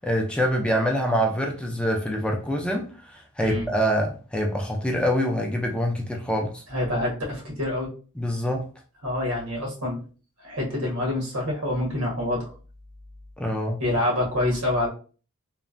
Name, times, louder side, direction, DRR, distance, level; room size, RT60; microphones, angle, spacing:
voice 1, 0.0-6.6 8.2-8.7 13.4-13.8, equal, 5° left, 0.3 m, -25 dB
voice 2, 6.7-7.9 9.0-10.0 10.4-12.5 13.8-14.9, left 1 dB, 90° right, 1.3 m, -26 dB
3.0 x 2.1 x 2.5 m
head